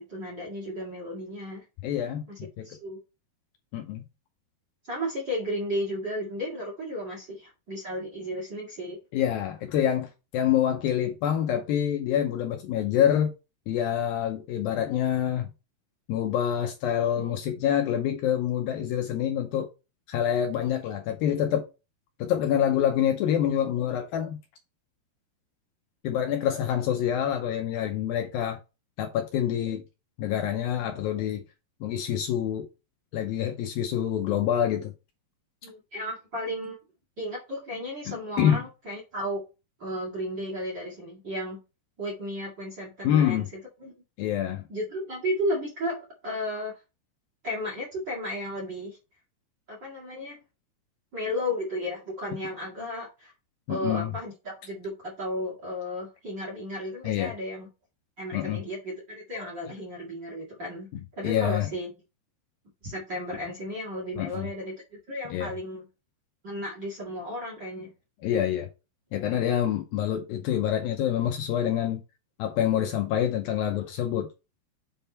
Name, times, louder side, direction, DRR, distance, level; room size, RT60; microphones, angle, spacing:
voice 1, 0.0-1.6 2.3-2.4 2.6-3.0 4.9-9.0 35.6-36.8 37.2-39.4 39.8-41.6 42.0-43.9 44.7-46.0 46.2-46.7 47.4-49.0 49.7-50.4 51.1-53.3 53.7-57.7 58.2-60.9 61.2-61.9 62.8-65.9 66.4-67.9, equal, 40° right, 1.8 m, -34 dB
voice 2, 1.8-2.7 3.7-4.0 9.1-13.3 13.7-15.5 16.1-19.7 20.1-21.7 22.2-24.4 26.0-28.6 29.0-29.8 30.2-31.4 31.8-32.7 33.1-34.9 38.1-38.7 43.0-43.5 44.2-44.7 53.7-54.1 57.0-57.3 58.3-58.6 59.4-59.5 61.2-61.7 64.2-64.5 65.3-65.5 68.2-68.7 69.1-72.0 72.4-74.3, left 10 dB, 75° left, 2.3 m, -26 dB
7.7 x 3.7 x 4.3 m
omnidirectional pair, 4.8 m